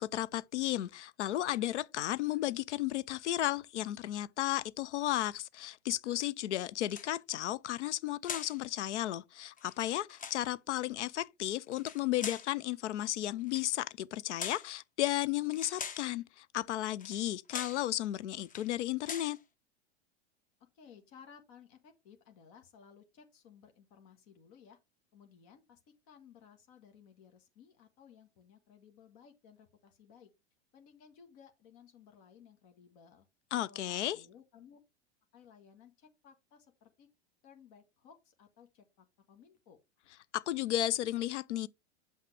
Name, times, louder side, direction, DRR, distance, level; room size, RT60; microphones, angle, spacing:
voice 1, 0.0-19.4 33.5-34.2 40.3-41.7, left 14 dB, 80° left, 0.6 m, -34 dB
sound 1, 6.8-7.4 8.2-8.6 9.6-10.5 11.7-12.5 13.4-13.7 14.4-14.7 15.5-16.1 17.0-17.2 17.5-17.9 18.4-18.7 19.0-19.4, left 6 dB, 25° left, 0.9 m, -42 dB
voice 2, 20.7-24.8 25.1-25.8 26.0-30.3 30.7-33.3 33.6-34.8 35.3-37.1 37.4-39.8, left 7 dB, 55° left, 1.6 m, -58 dB
7.4 x 5.8 x 3.2 m
hypercardioid pair, 100°, 35 cm